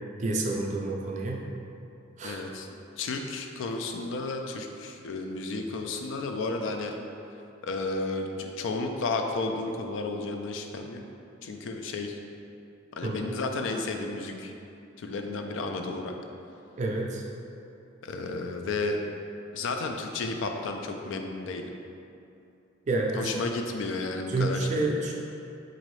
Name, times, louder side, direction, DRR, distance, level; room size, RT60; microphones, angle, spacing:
voice 1, 0.2-1.4 2.2-2.4 13.0-13.2 16.8-17.2 22.9-23.3 24.3-25.1, right 2 dB, 40° right, -1 dB, 0.4 m, -28 dB
voice 2, 2.2-2.7 3.0-6.9 7.6-11.0 11.4-12.2 13.0-14.5 15.0-16.2 18.0-19.0 19.5-21.7 23.1-24.7, left 3 dB, 70° left, 4 dB, 0.3 m, -32 dB
3.9 x 2.6 x 3.1 m, 2.6 s
head